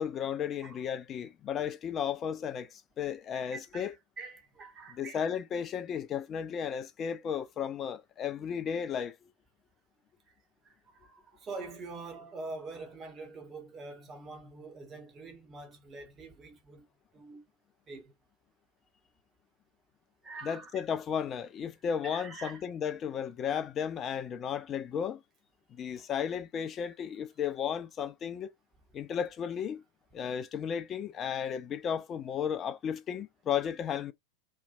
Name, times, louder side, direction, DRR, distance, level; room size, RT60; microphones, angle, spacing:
voice 1, 0.0-3.9 4.9-9.3 20.4-25.2 25.7-28.5 28.9-29.8 30.1-34.1, left 8 dB, 25° left, 0.3 m, -34 dB
voice 2, 3.3-3.9 4.2-5.2 10.6-16.9 17.1-17.4 17.9-18.1 20.2-20.8 22.0-22.6 26.0-26.1, right 3 dB, 25° right, 0.8 m, -45 dB
2.6 x 2.2 x 2.4 m
figure-of-eight pair, 90°, 0 cm